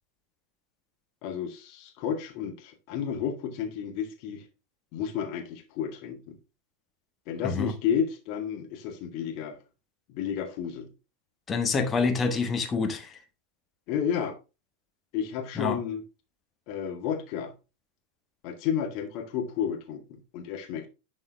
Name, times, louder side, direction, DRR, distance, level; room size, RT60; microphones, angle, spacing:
voice 1, 1.2-4.5 4.9-6.4 7.3-9.6 10.1-10.9 13.9-14.3 15.1-16.0 16.7-17.5 18.4-20.9, left 8 dB, 40° left, 1.9 m, -31 dB
voice 2, 11.5-13.1 15.6-15.8, left 4 dB, 20° left, 1.4 m, -27 dB
11.0 x 4.4 x 3.5 m
figure-of-eight pair, 90°, 0 cm